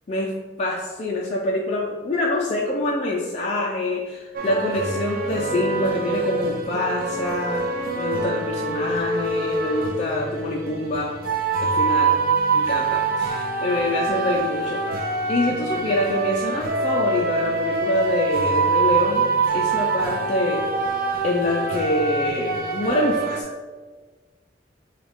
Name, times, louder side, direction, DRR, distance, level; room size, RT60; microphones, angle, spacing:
voice 1, 0.6-7.6 7.9-11.1 11.6-12.2 12.5-14.8 15.3-19.2 19.5-20.7 21.2-23.5, left 1 dB, 40° left, -3 dB, 0.4 m, -25 dB
sound 1, 4.3-23.4, right 3 dB, 50° right, 0.5 m, -24 dB
6.1 x 2.4 x 3.5 m, 1.3 s
head